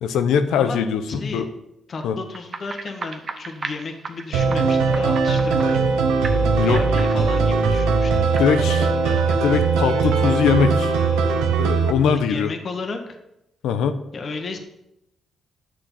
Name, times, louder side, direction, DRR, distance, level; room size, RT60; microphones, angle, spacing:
voice 1, 0.0-1.5 2.0-2.2 6.6-6.8 8.4-8.9 9.4-10.9 11.6-12.5 13.6-14.0, left 7 dB, 80° left, 9 dB, 0.7 m, -21 dB
voice 2, 1.1-1.4 1.9-5.8 6.6-9.4 12.0-13.2 14.1-14.6, left 3 dB, 55° left, 4 dB, 1.7 m, -33 dB
sound 1, 2.3-6.0 6.2-8.4, right 4 dB, 50° right, 0.9 m, -36 dB
Wind instrument woodwind instrument, 4.3-11.6, right 1 dB, 10° left, 1.0 m, -25 dB
sound 2, 4.3-11.9, right 6 dB, 85° right, 0.8 m, -21 dB
9.2 x 6.7 x 5.7 m, 0.87 s
supercardioid pair, 50°, 0 cm